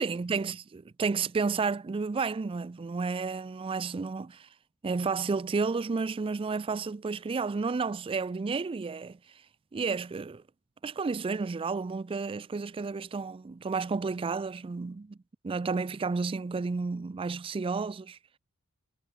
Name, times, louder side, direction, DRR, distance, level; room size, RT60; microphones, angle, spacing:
voice 1, 0.0-4.5 4.8-9.2 9.7-10.4 10.8-15.2 15.4-18.2, right 4 dB, 25° right, 0.3 m, -31 dB
head